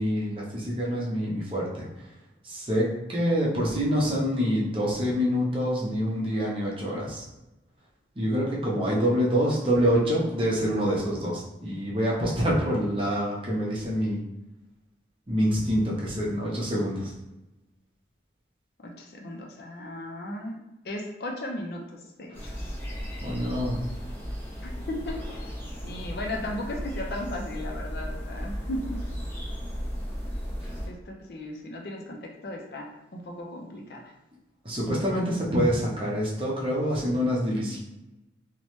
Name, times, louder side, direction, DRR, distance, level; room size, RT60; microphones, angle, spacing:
voice 1, 0.0-1.9 2.4-7.2 8.2-14.2 15.3-17.1 23.2-23.8 34.6-37.8, equal, 30° right, -4 dB, 0.6 m, -26 dB
voice 2, 18.8-20.6 20.8-22.5 24.6-25.5 25.8-29.0 30.9-32.9 33.1-34.1, left 1 dB, 60° left, 0 dB, 0.4 m, -36 dB
sound 1, 22.3-30.9, equal, 10° left, 0.5 m, -35 dB
3.0 x 2.1 x 2.9 m, 0.96 s
head